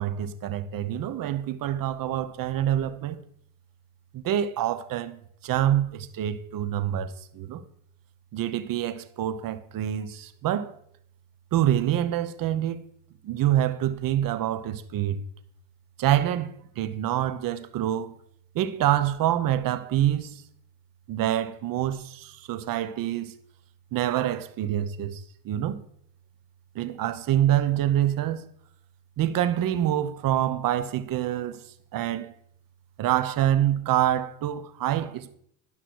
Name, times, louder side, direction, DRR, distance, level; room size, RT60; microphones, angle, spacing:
voice 1, 0.0-3.2 4.1-5.2 5.4-7.6 8.3-10.7 11.5-12.8 13.2-15.2 16.0-18.1 18.5-20.4 21.1-23.3 23.9-25.8 26.7-28.5 29.2-31.6 31.9-32.3 33.0-35.4, right 12 dB, 45° right, 0.9 m, -26 dB
11.0 x 5.8 x 4.6 m
supercardioid pair, 110°, 47 cm